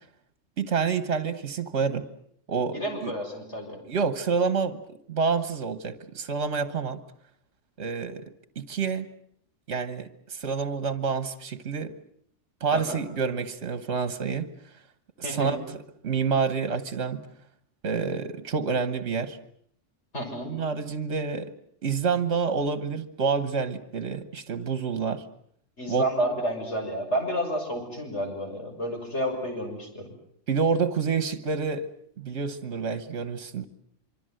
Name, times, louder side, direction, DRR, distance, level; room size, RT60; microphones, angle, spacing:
voice 1, 0.6-2.0 2.5-3.1 3.9-7.0 7.8-8.2 8.5-9.1 9.7-11.9 12.6-14.5 15.2-15.8 16.0-17.2 17.8-19.4 20.4-21.5 21.8-25.2 25.9-26.0 30.5-31.9 32.2-33.7, right 5 dB, 65° right, 11 dB, 1.5 m, -28 dB
voice 2, 2.6-3.8 12.7-13.0 15.2-15.5 20.1-20.5 25.8-30.1, equal, 65° left, 2 dB, 6.6 m, -30 dB
25.0 x 25.0 x 7.8 m, 0.66 s
omnidirectional pair, 1.3 m